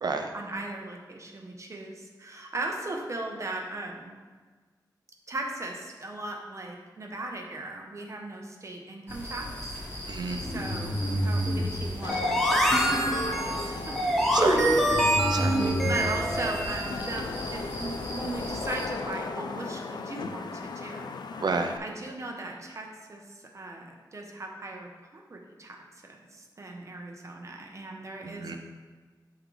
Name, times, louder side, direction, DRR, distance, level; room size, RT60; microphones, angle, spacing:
voice 1, 0.3-4.1 5.3-9.7 10.4-11.0 11.2-14.7 15.9-17.3 17.5-21.2 21.8-25.8 26.0-28.6, right 2 dB, 40° right, 1 dB, 1.0 m, -38 dB
sound 1, 9.1-18.8, equal, 30° left, 2.1 m, -33 dB
voice 2, 10.1-10.4 14.3-14.8 15.3-15.8 21.4-21.7 28.2-28.6, right 4 dB, 65° right, 5 dB, 0.7 m, -30 dB
Wind / Rain, 10.3-21.8, left 4 dB, 70° left, 0.4 m, -38 dB
sound 2, 12.1-17.0, equal, ahead, 0.8 m, -25 dB
11.5 x 3.8 x 3.3 m, 1.4 s
wide cardioid pair, 125°, 8 cm